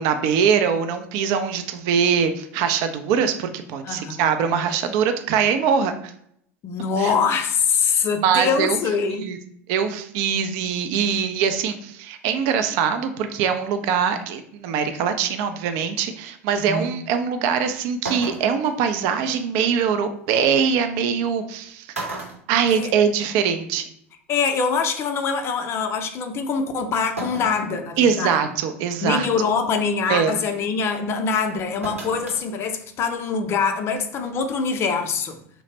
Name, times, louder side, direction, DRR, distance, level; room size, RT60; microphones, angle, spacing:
voice 1, 0.0-6.1 7.0-7.1 8.2-8.8 9.1-9.4 9.7-21.9 22.5-23.9 28.0-29.3 30.1-30.3, right 7 dB, 50° right, 0.4 m, -22 dB
voice 2, 3.8-4.3 6.6-9.3 16.6-16.9 22.7-22.9 24.3-28.4 29.0-35.4, left 5 dB, 35° left, 0.5 m, -24 dB
sound 1, 17.5-17.6 18.0-18.7 20.3-20.4 21.4-21.6 21.9-23.3 23.7-23.8 25.0-25.1 27.2-27.7 28.2-28.3 28.9-29.2 31.8-32.4 32.8-32.9, right 2 dB, 85° right, 0.8 m, -33 dB
3.1 x 2.0 x 4.1 m
figure-of-eight pair, 75°, 7 cm